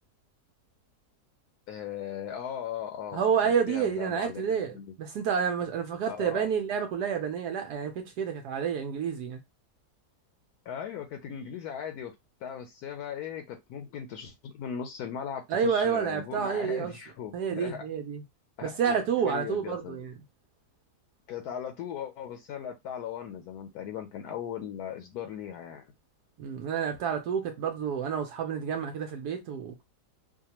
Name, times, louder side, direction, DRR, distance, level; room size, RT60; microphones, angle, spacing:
voice 1, 1.7-4.9 6.1-6.5 10.7-12.1 12.4-17.8 18.6-20.1 21.3-25.9, left 8 dB, 75° left, 1.0 m, -38 dB
voice 2, 3.1-9.4 15.5-16.9 17.3-18.2 18.6-20.1 26.4-29.8, right 7 dB, 75° right, 1.2 m, -29 dB
4.8 x 2.2 x 2.9 m
omnidirectional pair, 1.8 m